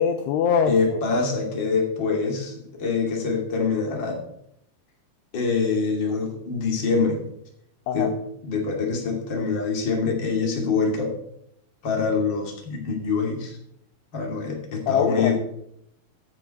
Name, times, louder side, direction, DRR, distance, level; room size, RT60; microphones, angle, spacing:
voice 1, 0.0-1.0 7.9-8.1 14.9-15.3, left 7 dB, 80° left, 7 dB, 2.5 m, -23 dB
voice 2, 0.7-2.5 2.8-4.2 5.3-7.2 7.9-8.1 8.4-11.1 11.8-13.6 14.1-15.3, left 4 dB, 30° left, 0 dB, 2.5 m, -25 dB
14.5 x 7.6 x 4.4 m, 0.75 s
omnidirectional pair, 5.2 m